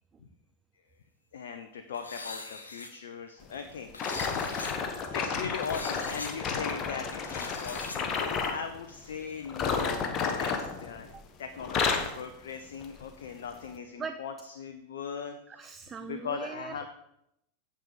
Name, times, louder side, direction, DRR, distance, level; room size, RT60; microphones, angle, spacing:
voice 1, 1.3-4.7 5.1-11.1 11.4-15.4 16.0-16.9, left 6 dB, 60° left, 7 dB, 0.7 m, -39 dB
sound 1, 1.9-2.9 3.9-4.7 5.6-6.3 7.1-8.0, left 3 dB, 75° left, 1.0 m, -41 dB
sound 2, 4.0-8.6 9.5-11.3 11.6-12.2 12.8-13.0 13.7-13.8, left 5 dB, 30° left, 1.2 m, -31 dB
voice 2, 15.5-16.9, right 5 dB, 20° right, 9 dB, 0.4 m, -40 dB
9.3 x 6.9 x 4.9 m, 0.81 s
figure-of-eight pair, 90°, 0 cm